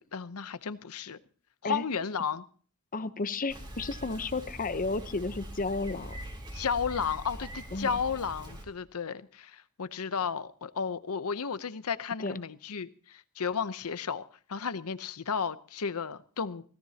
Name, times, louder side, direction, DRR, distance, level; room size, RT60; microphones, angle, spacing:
voice 1, 0.1-1.2 1.6-2.4 6.5-14.2 14.5-16.6, left 6 dB, 75° left, 14 dB, 0.8 m, -33 dB
voice 2, 2.9-6.2 7.7-7.9 12.2-12.4, left 3 dB, 40° left, 12 dB, 0.8 m, -32 dB
Bicycle, 3.5-8.6, right 1 dB, 20° right, 3.4 m, -43 dB
24.5 x 17.0 x 2.9 m, 0.44 s
head